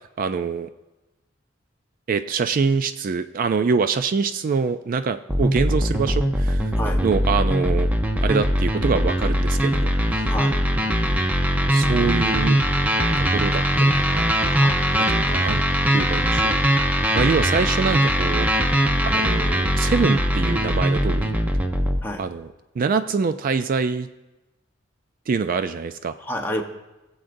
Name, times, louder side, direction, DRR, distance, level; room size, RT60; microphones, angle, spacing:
voice 1, 0.2-0.7 2.1-6.7 7.0-7.9 8.2-10.3 11.7-12.6 13.3-14.6 15.0-15.6 15.9-16.5 17.1-18.5 19.0-21.3 22.2-22.5 22.8-24.1 25.3-26.1, right 5 dB, 45° right, 10 dB, 0.3 m, -25 dB
sound 1, 5.3-22.0, equal, 10° right, 0.7 m, -21 dB
voice 2, 10.3-10.6 14.5-15.1 22.0-22.2 26.2-26.6, equal, 10° left, 2 dB, 1.0 m, -29 dB
22.0 x 7.8 x 2.6 m, 1.1 s
head